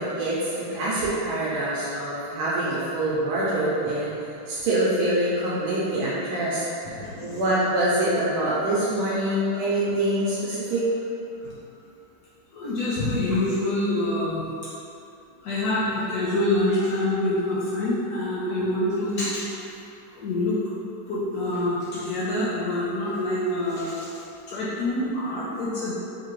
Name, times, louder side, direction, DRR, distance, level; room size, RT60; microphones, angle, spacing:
voice 1, 0.0-4.1 4.5-10.8, right 1 dB, 80° right, -8 dB, 1.4 m, -25 dB
voice 2, 7.0-7.4 11.4-11.5 12.5-14.4 15.4-19.4 20.1-20.6 21.1-25.9, left 1 dB, 85° left, -8 dB, 0.8 m, -26 dB
3.6 x 3.3 x 3.0 m, 2.8 s
omnidirectional pair, 2.4 m